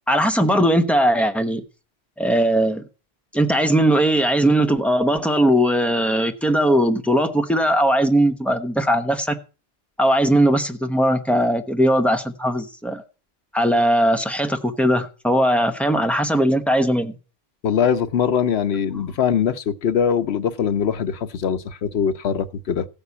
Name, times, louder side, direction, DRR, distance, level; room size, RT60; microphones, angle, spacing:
voice 1, 0.1-1.6 2.2-2.8 3.3-9.4 10.0-13.0 13.5-17.1, right 1 dB, ahead, 1.0 m, -19 dB
voice 2, 17.6-22.9, left 7 dB, 90° left, 1.0 m, -22 dB
15.0 x 5.4 x 8.3 m
omnidirectional pair, 1.0 m